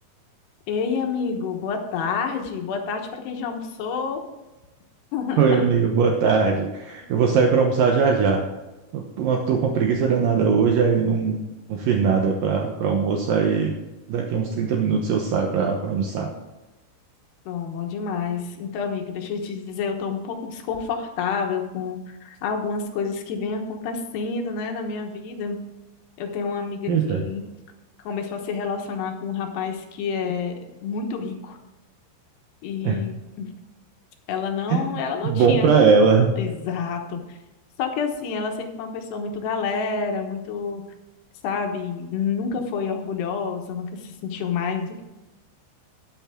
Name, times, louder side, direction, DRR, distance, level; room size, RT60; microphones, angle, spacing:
voice 1, 0.7-4.2 5.1-5.7 7.0-7.1 17.5-25.6 26.2-27.4 28.0-30.5 30.8-31.6 32.6-33.5 34.3-35.9 36.4-37.4 37.8-40.8 41.4-45.0, left 5 dB, 70° left, 3 dB, 3.0 m, -28 dB
voice 2, 5.4-8.4 8.9-11.4 11.7-13.8 14.1-16.3 26.9-27.2 32.8-33.0 34.7-36.3, right 5 dB, 80° right, 2 dB, 2.0 m, -20 dB
12.5 x 10.5 x 3.7 m, 1.1 s
omnidirectional pair, 5.5 m